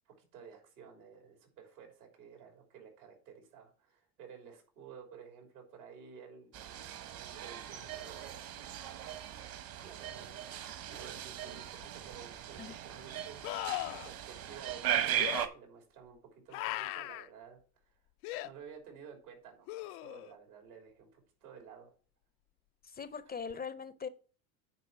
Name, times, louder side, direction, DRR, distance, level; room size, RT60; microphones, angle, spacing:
voice 1, 0.2-6.6 7.2-10.4 10.9-11.7 11.9-13.5 13.9-18.0 18.4-21.9, right 6 dB, 85° right, 3.2 m, -53 dB
sound 1, 6.5-15.5, right 11 dB, 55° right, 1.2 m, -38 dB
sound 2, 11.8-11.9 13.4-14.1 15.2-15.5 16.5-17.3 18.2-18.5 19.7-20.4 23.5-23.6, left 17 dB, 80° left, 0.6 m, -38 dB
voice 2, 22.8-24.1, left 6 dB, 20° left, 0.5 m, -41 dB
9.4 x 4.2 x 5.7 m
hypercardioid pair, 80°, 43 cm